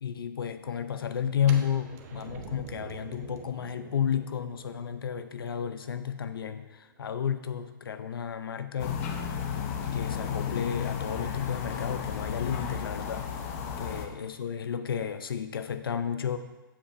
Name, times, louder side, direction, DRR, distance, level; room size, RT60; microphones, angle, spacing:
voice 1, 0.0-9.0 9.8-13.3 13.8-16.4, left 8 dB, 90° left, 10 dB, 0.5 m, -32 dB
sound 1, 1.4-7.2, right 6 dB, 45° right, 0.8 m, -47 dB
sound 2, 8.8-14.1, left 7 dB, 40° left, 0.7 m, -33 dB
7.3 x 7.1 x 2.5 m, 1.1 s
hypercardioid pair, 140°, 12 cm